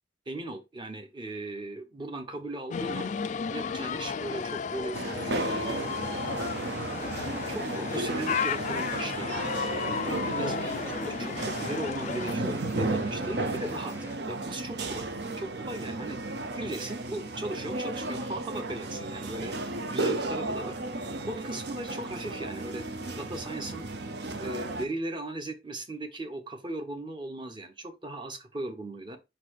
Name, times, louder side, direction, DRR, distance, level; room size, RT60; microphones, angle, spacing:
voice 1, 0.3-3.1 3.5-5.9 7.5-9.4 10.0-14.0 14.3-15.1 15.4-20.8 21.2-23.8 24.4-29.2, right 2 dB, 25° right, 0.9 m, -38 dB
sound 1, 2.7-12.3, left 6 dB, 40° left, 0.3 m, -33 dB
sound 2, 4.9-24.9, right 2 dB, 60° right, 0.8 m, -34 dB
sound 3, 5.6-14.2, equal, 10° right, 1.2 m, -48 dB
5.4 x 4.1 x 4.6 m
head